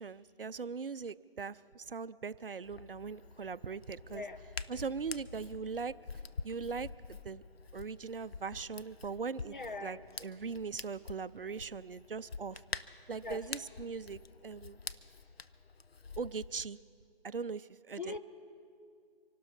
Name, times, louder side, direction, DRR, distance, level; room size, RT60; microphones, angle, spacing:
voice 1, 0.0-4.2 4.7-5.9 6.4-7.4 7.7-9.6 9.8-12.6 13.1-14.8 16.2-16.8 17.2-18.1, right 5 dB, 65° right, 16 dB, 0.5 m, -40 dB
Hands, 2.6-16.6, left 4 dB, 80° left, 0.7 m, -47 dB
voice 2, 9.4-10.0 13.2-13.4 18.0-18.2, left 3 dB, 55° left, 7 dB, 1.1 m, -41 dB
25.5 x 12.0 x 4.2 m, 2.3 s
figure-of-eight pair, 165°, 30 cm